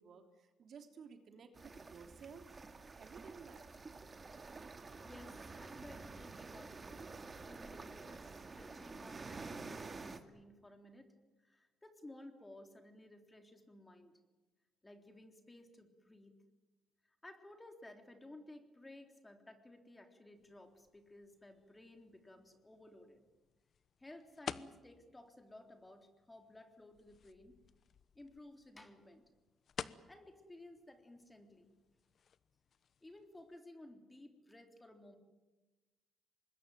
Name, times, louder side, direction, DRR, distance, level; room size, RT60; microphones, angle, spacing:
voice 1, 0.0-2.5 3.0-3.6, right 6 dB, 60° right, 6 dB, 3.1 m, -55 dB
sound 1, 1.6-10.2, right 3 dB, 30° right, 2.3 m, -49 dB
voice 2, 5.0-7.1 7.5-11.1 11.4-14.1 14.8-16.3 17.2-23.2 24.0-27.5 28.2-29.3 30.1-31.7 33.0-35.2, left 1 dB, 15° left, 6 dB, 3.6 m, -56 dB
sound 2, 20.3-33.6, left 7 dB, 55° left, 1.0 m, -53 dB
25.0 x 21.0 x 9.2 m, 1.2 s
cardioid pair, 90°, 0 cm